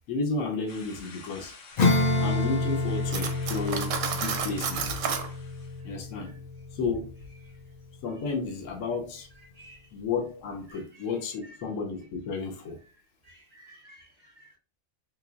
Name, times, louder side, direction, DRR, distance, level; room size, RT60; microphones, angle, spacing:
voice 1, 0.1-1.5 2.2-5.2 5.8-6.4 6.7-7.1 8.0-9.3 9.9-12.8, left 4 dB, 90° left, 2 dB, 1.1 m, -32 dB
sound 1, 0.7-5.8, left 4 dB, 65° left, 1.2 m, -49 dB
Acoustic guitar / Strum, 1.8-7.8, left 2 dB, 50° left, 0.5 m, -29 dB
voice 2, 3.1-3.5 4.0-4.2 5.8-6.0 6.2-6.3 7.4-7.6 9.5-9.9 10.7-11.0 11.4-11.6 13.2-14.6, right 1 dB, 35° right, 1 dB, 1.0 m, -54 dB
Cutlery silverware, 3.1-5.3, right 7 dB, 80° right, 0.9 m, -31 dB
3.3 x 2.9 x 2.4 m, 0.36 s
omnidirectional pair, 1.3 m